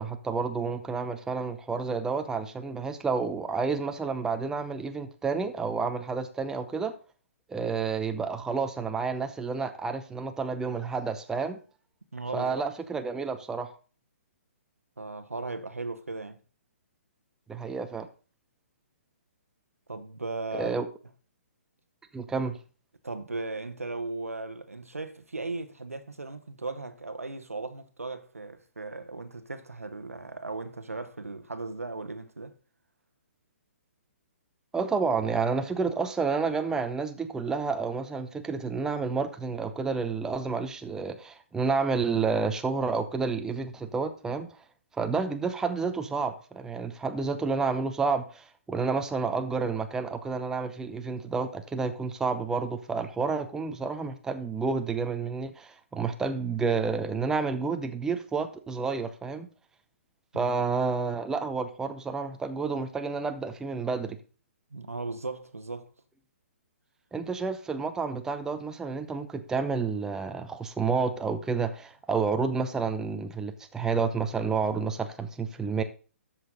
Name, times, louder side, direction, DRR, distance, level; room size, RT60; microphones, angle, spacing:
voice 1, 0.0-6.9 7.5-11.6 12.3-13.7 17.5-18.1 20.5-20.9 22.1-22.6 34.7-44.5 45.0-59.5 60.3-64.2 67.1-75.8, right 4 dB, 5° right, 0.7 m, -30 dB
voice 2, 12.1-12.7 15.0-16.4 19.9-20.7 23.0-32.5 60.3-60.5 64.7-65.9, right 3 dB, 80° right, 1.2 m, -37 dB
13.0 x 5.8 x 3.8 m
figure-of-eight pair, 125°, 8 cm